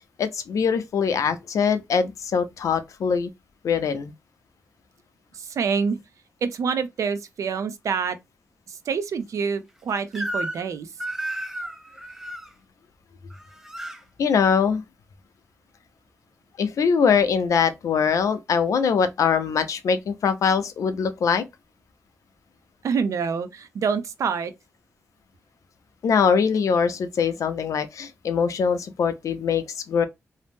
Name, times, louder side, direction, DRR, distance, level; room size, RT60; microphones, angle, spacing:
voice 1, 0.0-3.3 3.6-4.1 14.2-14.8 16.6-21.4 26.0-30.0, left 6 dB, 85° left, 0.5 m, -22 dB
voice 2, 5.3-6.0 6.4-8.2 8.7-10.9 22.8-24.5, right 6 dB, 80° right, 0.5 m, -26 dB
Crying sobbing / Screech, 10.1-10.7 11.0-12.5 13.3-14.0, right 1 dB, 5° right, 0.4 m, -32 dB
2.8 x 2.0 x 3.3 m
wide cardioid pair, 155°, 5 cm